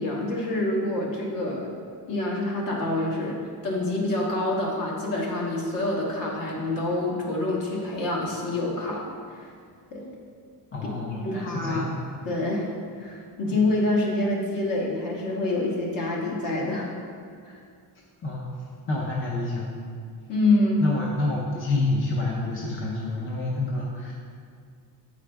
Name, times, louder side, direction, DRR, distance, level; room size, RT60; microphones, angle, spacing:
voice 1, 0.0-1.7 2.1-9.5 9.9-10.1 11.1-11.9 12.2-12.7 13.0-16.9 17.4-17.6 20.3-20.9, left 2 dB, 50° left, -2 dB, 1.4 m, -26 dB
voice 2, 10.7-12.0 18.2-18.5 18.9-19.8 20.8-24.1, left 2 dB, 30° left, -3 dB, 0.6 m, -28 dB
7.9 x 4.9 x 3.4 m, 2.2 s
cardioid pair, 150°, 42 cm